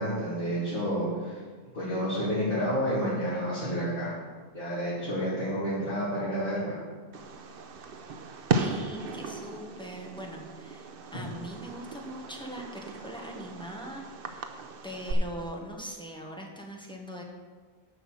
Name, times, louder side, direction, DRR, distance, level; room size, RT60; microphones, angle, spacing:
voice 1, 0.0-1.4 1.7-4.1 4.5-6.8, equal, 55° left, -11 dB, 3.2 m, -30 dB
Fireworks, 7.1-15.1, right 3 dB, 65° right, 0.9 m, -36 dB
voice 2, 8.5-14.5 14.8-17.2, equal, 5° left, 0 dB, 1.3 m, -41 dB
7.9 x 5.8 x 7.6 m, 1.5 s
omnidirectional pair, 1.0 m